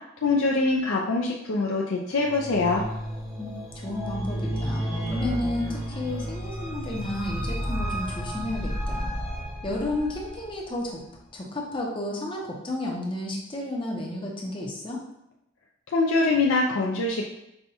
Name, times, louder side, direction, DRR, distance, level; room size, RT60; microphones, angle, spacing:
voice 1, 0.2-2.8 15.9-17.3, left 3 dB, 85° left, -1 dB, 0.4 m, -24 dB
sound 1, 2.1-10.4, equal, 15° right, 0.7 m, -32 dB
voice 2, 3.4-9.1 9.6-11.0 11.3-15.0, left 1 dB, 25° left, -2 dB, 0.7 m, -32 dB
5.5 x 2.3 x 2.7 m, 0.83 s
head